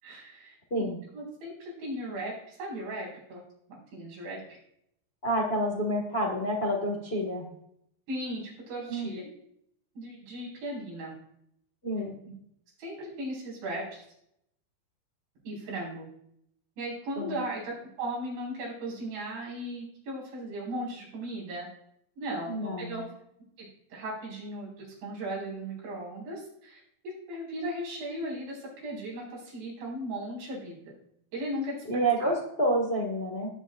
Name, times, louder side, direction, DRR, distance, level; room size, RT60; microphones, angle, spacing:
voice 1, 0.0-3.4 3.9-4.4 8.1-9.2 9.9-11.1 12.8-14.0 15.4-16.1 16.8-21.7 22.2-23.0 23.6-30.8 31.3-32.4, right 1 dB, 90° right, -5 dB, 7.6 m, -37 dB
voice 2, 5.2-7.4 8.9-9.1 11.8-12.1 17.2-17.4 22.5-23.0 31.9-33.5, right 1 dB, 85° left, 0 dB, 0.5 m, -28 dB
18.0 x 9.1 x 2.6 m, 0.74 s
omnidirectional pair, 4.9 m